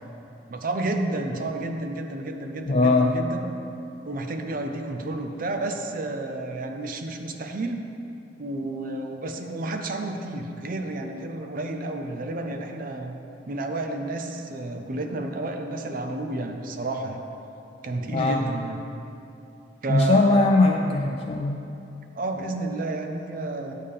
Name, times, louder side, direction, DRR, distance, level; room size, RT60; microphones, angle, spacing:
voice 1, 0.5-3.5 4.0-7.8 8.4-13.1 13.5-17.2 17.8-18.8 19.8-20.3 22.1-23.7, right 2 dB, 50° right, 5 dB, 0.6 m, -31 dB
voice 2, 2.7-3.2 18.1-18.4 19.9-21.6, left 2 dB, 35° left, 1 dB, 0.4 m, -20 dB
8.5 x 8.2 x 3.7 m, 2.8 s
head